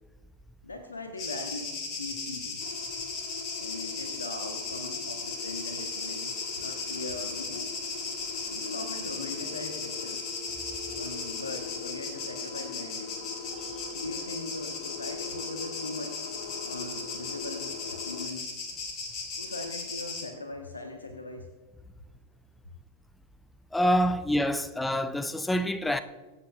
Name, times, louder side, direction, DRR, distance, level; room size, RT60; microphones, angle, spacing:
voice 1, 0.6-2.6 3.6-7.7 8.5-10.2 10.9-13.1 13.9-16.2 16.6-18.5 19.4-21.5, left 2 dB, 75° left, 1.0 m, -40 dB
sound 1, 1.2-20.3, left 4 dB, 35° left, 2.6 m, -37 dB
sound 2, 2.6-18.3, left 6 dB, 50° left, 0.7 m, -43 dB
voice 2, 23.7-26.0, equal, 5° left, 0.6 m, -26 dB
23.5 x 8.6 x 2.5 m
figure-of-eight pair, 90°, 0 cm